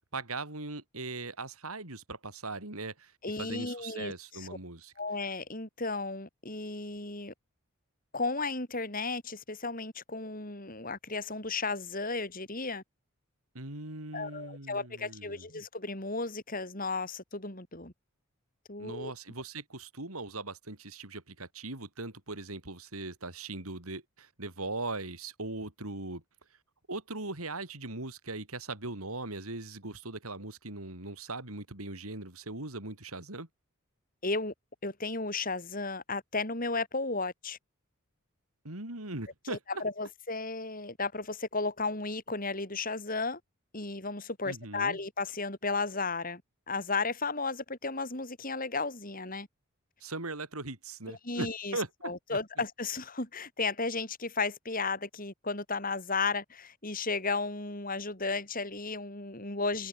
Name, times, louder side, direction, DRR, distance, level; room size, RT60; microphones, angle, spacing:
voice 1, 0.1-3.1 3.4-4.9 13.5-15.5 18.8-26.2 26.9-33.5 38.6-39.8 44.4-45.0 50.0-52.4, right 2 dB, 85° right, 4.6 m, -39 dB
voice 2, 3.2-4.5 5.0-7.3 8.1-12.8 14.1-17.9 18.7-19.1 34.2-34.5 34.8-37.6 39.5-43.4 43.7-46.4 46.7-49.5 51.1-51.8 52.0-59.9, left 3 dB, 40° left, 5.7 m, -34 dB
head